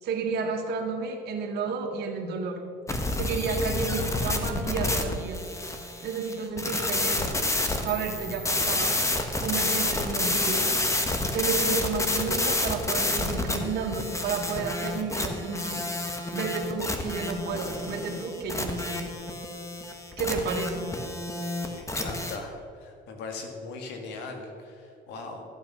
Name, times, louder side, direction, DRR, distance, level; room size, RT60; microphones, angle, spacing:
voice 1, 0.0-2.6 3.1-5.4 6.0-7.4 7.8-9.0 9.4-10.7 11.3-15.8 16.3-19.0 20.2-20.9, right 5 dB, 75° right, 2 dB, 2.1 m, -31 dB
sound 1, 2.9-22.4, left 2 dB, 15° left, 1.5 m, -29 dB
voice 2, 21.7-22.5 22.8-25.4, left 3 dB, 90° left, 3 dB, 2.2 m, -39 dB
14.0 x 8.6 x 5.7 m, 2.5 s
cardioid pair, 110°, 17 cm